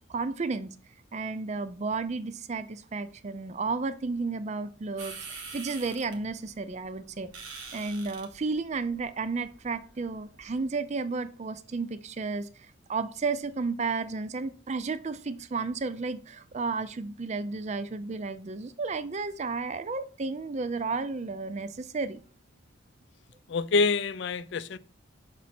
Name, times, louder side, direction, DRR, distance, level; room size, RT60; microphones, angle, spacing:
voice 1, 0.1-0.7 1.1-7.3 7.7-22.2, right 4 dB, 35° right, 0.4 m, -32 dB
sound 1, 5.0-10.6, right 4 dB, 90° right, 1.2 m, -46 dB
voice 2, 23.5-24.8, left 4 dB, 60° left, 0.4 m, -26 dB
6.0 x 4.1 x 4.3 m
head